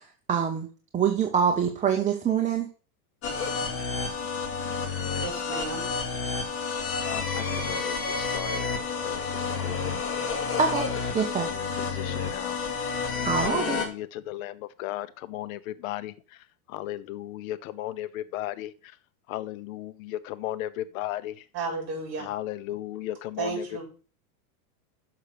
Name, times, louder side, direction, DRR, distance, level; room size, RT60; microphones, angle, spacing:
voice 1, 0.3-0.7 0.9-2.7 10.6-10.9 11.1-11.5 13.2-13.8, right 7 dB, 15° right, 3 dB, 0.8 m, -25 dB
sound 1, 3.2-13.9, left 5 dB, 30° left, 2.5 m, -30 dB
voice 2, 5.2-5.9 21.5-22.3 23.4-23.8, right 4 dB, 35° right, 1 dB, 4.7 m, -33 dB
voice 3, 7.1-8.6 9.0-10.0 11.6-12.6 13.4-16.1 16.7-18.7 19.3-21.3 22.2-23.8, left 14 dB, 65° left, 15 dB, 0.7 m, -35 dB
6.7 x 5.8 x 6.7 m, 0.37 s
supercardioid pair, 140°, 44 cm